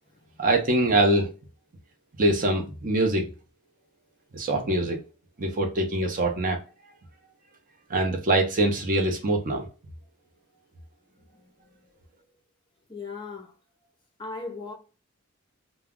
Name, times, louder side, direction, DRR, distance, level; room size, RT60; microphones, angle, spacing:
voice 1, 0.4-1.3 2.2-3.3 4.3-5.0 5.4-6.6 7.9-9.7, right 2 dB, 40° right, 0.6 m, -23 dB
voice 2, 11.3-11.8 12.9-13.5 14.2-14.7, left 3 dB, 25° left, 0.5 m, -38 dB
2.2 x 2.0 x 3.5 m
head